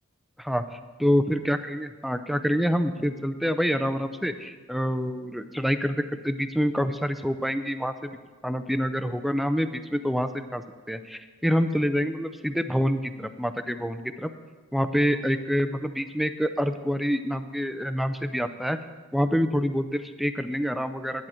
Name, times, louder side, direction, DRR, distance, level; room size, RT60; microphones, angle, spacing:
voice 1, 0.4-8.2 8.4-14.3 14.7-18.8 19.1-21.3, equal, ahead, 9 dB, 0.4 m, -27 dB
11.0 x 9.2 x 4.4 m, 1.4 s
head